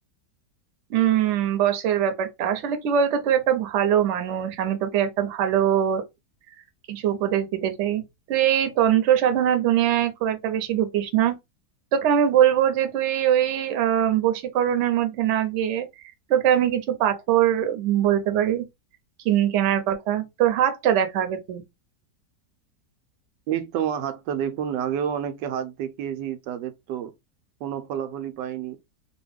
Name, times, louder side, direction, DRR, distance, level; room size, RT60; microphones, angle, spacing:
voice 1, 0.9-6.0 6.9-8.0 8.3-11.3 11.9-15.9 16.3-18.6 19.2-21.6, right 10 dB, 60° right, 0.8 m, -22 dB
voice 2, 23.5-27.1 27.6-28.8, right 9 dB, 90° right, 1.2 m, -29 dB
3.0 x 2.1 x 3.3 m
omnidirectional pair, 1.8 m